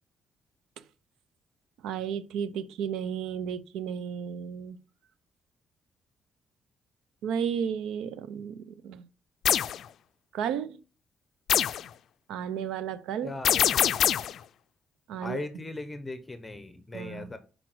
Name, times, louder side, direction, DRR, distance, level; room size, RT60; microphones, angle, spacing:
voice 1, 1.8-4.8 7.2-9.0 10.3-10.8 12.3-13.3 15.1-15.4 16.9-17.3, right 8 dB, 90° right, 0.6 m, -33 dB
sound 1, 9.4-9.8 11.5-11.9 13.4-14.4, left 10 dB, 70° left, 0.4 m, -24 dB
voice 2, 13.2-14.0 15.2-17.4, left 2 dB, 15° left, 1.0 m, -38 dB
6.0 x 5.1 x 6.0 m
cardioid pair, 90°, 0 cm